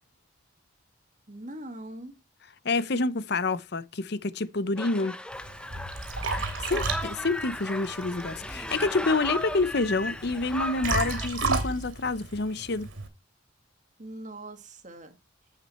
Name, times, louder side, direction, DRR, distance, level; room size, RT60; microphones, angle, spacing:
voice 1, 1.3-2.2 14.0-15.2, right 1 dB, 40° right, 1.9 m, -41 dB
voice 2, 2.6-5.1 6.7-12.9, left 3 dB, 55° left, 0.7 m, -28 dB
sound 1, 4.8-11.3, left 1 dB, 5° left, 0.6 m, -36 dB
Liquid, 5.3-13.1, right 3 dB, 85° right, 3.1 m, -33 dB
8.8 x 8.5 x 4.2 m
head